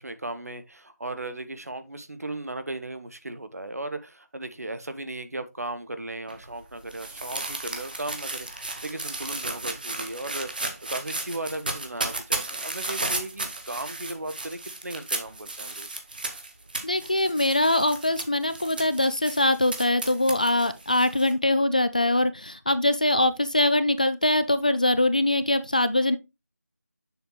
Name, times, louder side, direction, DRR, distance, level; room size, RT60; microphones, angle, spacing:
voice 1, 0.0-15.9, right 2 dB, 65° right, 1.1 m, -36 dB
sound 1, 6.3-21.3, right 2 dB, 30° right, 0.9 m, -34 dB
voice 2, 16.8-26.2, left 1 dB, 30° left, 0.4 m, -23 dB
7.0 x 6.1 x 3.0 m
figure-of-eight pair, 170°, 9 cm